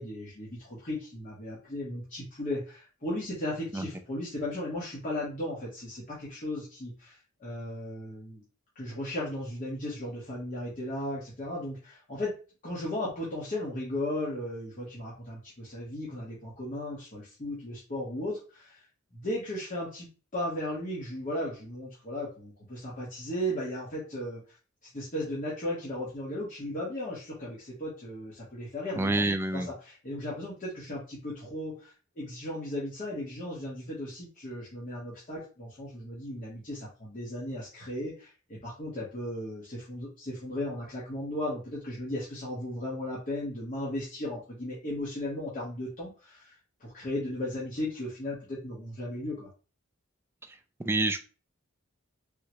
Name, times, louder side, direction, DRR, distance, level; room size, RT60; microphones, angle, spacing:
voice 1, 0.0-8.4 8.7-12.3 12.6-18.8 19.1-20.1 20.3-24.4 24.9-29.2 29.5-46.5 46.8-49.5, left 1 dB, 40° left, -7 dB, 1.0 m, -36 dB
voice 2, 29.0-29.7 50.5-51.2, right 2 dB, 10° right, 8 dB, 0.3 m, -28 dB
3.7 x 2.2 x 2.9 m, 0.34 s
head